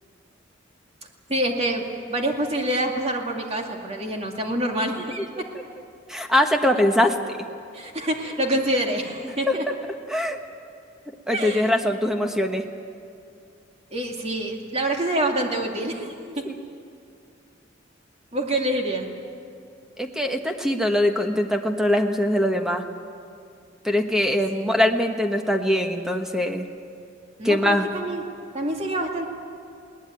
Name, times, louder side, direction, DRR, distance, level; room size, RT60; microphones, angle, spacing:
voice 1, 1.3-5.5 7.7-9.6 11.3-11.7 13.9-16.4 18.3-19.1 24.3-24.6 27.4-28.2 28.5-29.2, right 1 dB, 35° right, 1 dB, 2.4 m, -26 dB
voice 2, 6.1-7.4 9.5-9.6 10.1-10.4 11.3-12.6 16.3-16.6 20.0-22.8 23.8-26.7 27.4-27.9, left 1 dB, 5° right, 4 dB, 1.3 m, -22 dB
21.5 x 18.5 x 9.2 m, 2.4 s
head